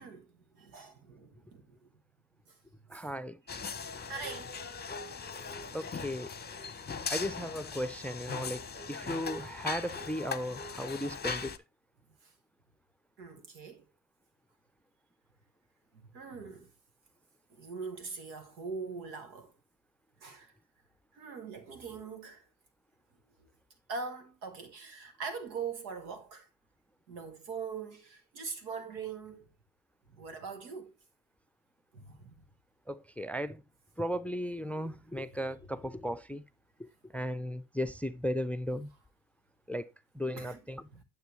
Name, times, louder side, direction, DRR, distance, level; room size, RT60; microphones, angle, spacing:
voice 1, 0.0-1.9 2.5-2.6 2.9-3.0 3.5-3.6 4.1-4.5 10.4-10.6 12.2-12.3 13.2-13.8 15.9-16.7 17.5-19.5 20.2-20.5 21.1-22.4 23.9-26.5 27.1-29.5 30.1-30.9 31.9-32.3 40.4-40.6 40.9-41.0, right 5 dB, 90° right, 1.4 m, -42 dB
voice 2, 2.9-3.4 5.7-6.3 7.1-8.6 8.9-11.5 32.9-33.6 34.0-36.4 37.1-38.9 39.7-39.9 40.1-40.8, equal, 5° left, 0.5 m, -36 dB
sound 1, 3.5-11.6, left 5 dB, 20° left, 0.9 m, -39 dB
9.2 x 7.6 x 3.1 m
hypercardioid pair, 45°, 50 cm